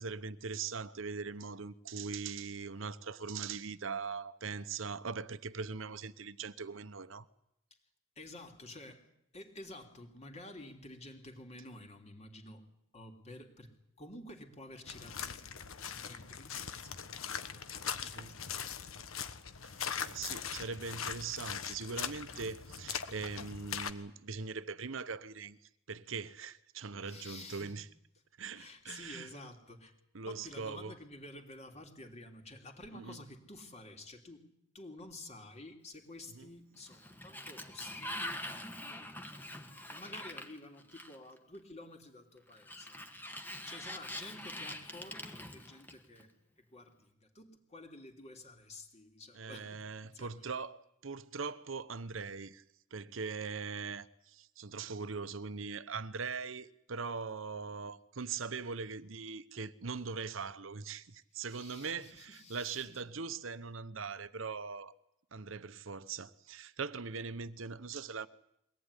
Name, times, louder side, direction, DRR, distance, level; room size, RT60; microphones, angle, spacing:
voice 1, 0.0-7.3 18.0-18.3 19.7-25.6 25.9-27.9 28.4-29.3 30.1-30.9 32.9-33.2 36.3-36.5 49.3-52.6 52.9-64.9 65.3-68.3, right 5 dB, 70° right, 0.9 m, -41 dB
voice 2, 8.2-9.1 9.3-12.6 12.9-18.9 27.0-27.8 28.5-30.0 30.3-34.4 34.7-39.4 39.9-43.0 43.7-46.3 46.6-50.4 61.5-63.0, left 2 dB, 35° left, 3.2 m, -51 dB
sound 1, 14.9-23.9, left 7 dB, 90° left, 1.3 m, -41 dB
Sliding door, 36.7-41.4 42.5-46.2, left 1 dB, 10° left, 1.7 m, -44 dB
22.5 x 18.0 x 9.9 m
head